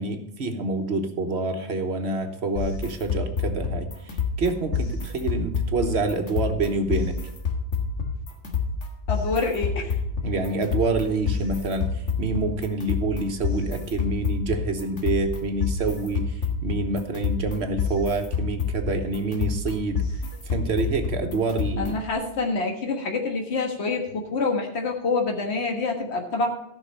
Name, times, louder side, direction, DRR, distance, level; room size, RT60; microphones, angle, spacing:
voice 1, 0.0-7.2 10.2-20.0 20.5-21.9, right 3 dB, 70° right, 6 dB, 1.4 m, -27 dB
sound 1, 2.6-22.1, left 5 dB, 90° left, 1.9 m, -29 dB
voice 2, 9.1-10.0 21.8-26.5, left 3 dB, 70° left, 1 dB, 1.7 m, -26 dB
13.5 x 5.9 x 5.3 m, 0.86 s
omnidirectional pair, 1.2 m